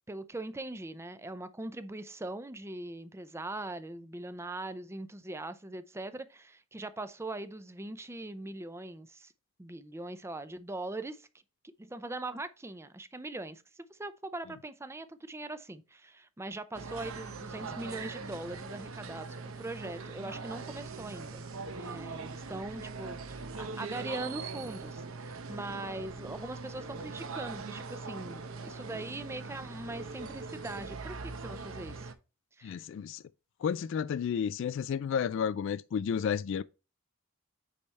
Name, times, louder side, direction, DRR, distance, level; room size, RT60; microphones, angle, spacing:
voice 1, 0.1-9.3 9.6-11.3 11.6-21.5 21.7-32.1 32.6-32.8, right 2 dB, 15° right, 0.5 m, -41 dB
sound 1, 16.7-32.1, right 4 dB, 75° right, 0.8 m, -41 dB
voice 2, 32.6-33.2 33.6-36.6, left 7 dB, 60° left, 0.3 m, -31 dB
8.4 x 3.5 x 4.1 m
head